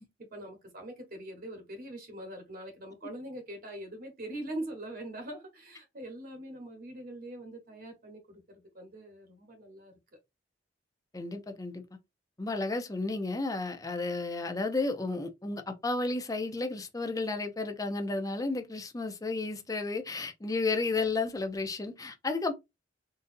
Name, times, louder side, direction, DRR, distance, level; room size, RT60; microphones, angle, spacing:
voice 1, 0.2-9.9, right 1 dB, 50° right, 1.2 m, -43 dB
voice 2, 11.1-11.8 12.4-22.5, left 3 dB, 20° left, 0.5 m, -32 dB
3.9 x 2.5 x 2.6 m
head